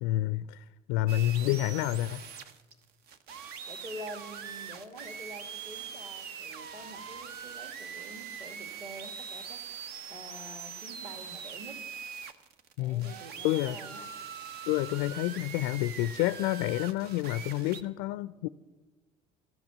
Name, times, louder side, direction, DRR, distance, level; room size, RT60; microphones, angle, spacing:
voice 1, 0.0-2.2 12.8-13.1 13.4-13.8 14.7-18.5, left 16 dB, 65° left, 0.4 m, -29 dB
sound 1, 1.1-17.8, right 7 dB, 55° right, 0.9 m, -42 dB
voice 2, 3.7-9.6 10.1-11.8 12.8-14.1, right 1 dB, 40° right, 2.3 m, -46 dB
15.5 x 6.0 x 7.2 m
hypercardioid pair, 60°, 19 cm